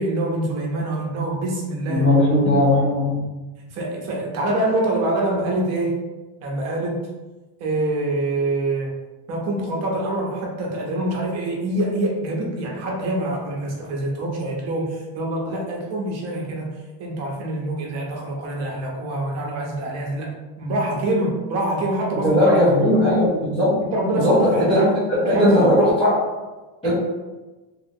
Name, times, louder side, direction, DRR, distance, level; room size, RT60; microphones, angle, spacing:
voice 1, 0.0-2.6 3.7-6.0 6.4-7.0 7.6-8.9 9.3-16.7 17.0-22.5 23.9-25.0 25.2-25.7, right 1 dB, 40° right, -1 dB, 0.6 m, -25 dB
voice 2, 1.9-3.3 22.2-23.8 24.1-24.8 25.1-26.2 26.8-26.9, left 1 dB, 15° left, -11 dB, 0.3 m, -18 dB
3.0 x 2.7 x 2.5 m, 1.2 s
cardioid pair, 175°, 43 cm